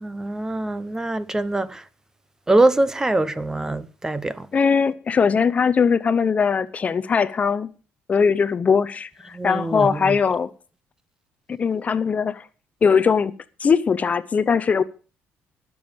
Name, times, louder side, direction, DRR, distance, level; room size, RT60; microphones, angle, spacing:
voice 1, 0.0-1.8 2.5-4.5 9.3-10.2, right 2 dB, 10° right, 0.7 m, -23 dB
voice 2, 4.5-7.7 8.1-10.5 11.6-12.4 12.8-13.3 13.6-14.8, left 6 dB, 30° left, 0.6 m, -20 dB
20.5 x 7.0 x 5.2 m
cardioid pair, 135°, 5 cm